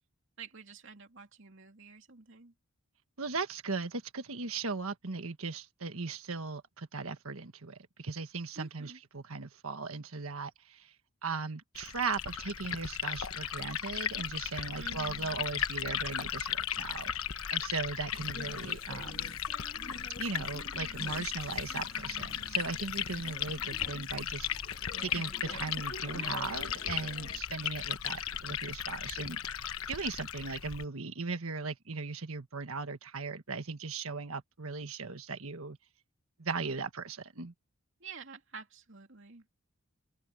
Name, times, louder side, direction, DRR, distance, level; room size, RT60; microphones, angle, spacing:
voice 1, 0.4-2.5 8.6-9.0 14.8-15.5 38.0-39.4, right 4 dB, 55° right, 2.9 m, -49 dB
voice 2, 3.2-10.9 11.2-19.4 20.2-24.5 25.0-29.4 29.9-35.8 36.4-37.5, right 4 dB, 75° right, 1.5 m, -38 dB
Liquid, 11.7-30.8, left 9 dB, 75° left, 1.1 m, -36 dB
sound 1, 18.1-27.4, left 2 dB, 40° left, 2.2 m, -49 dB
head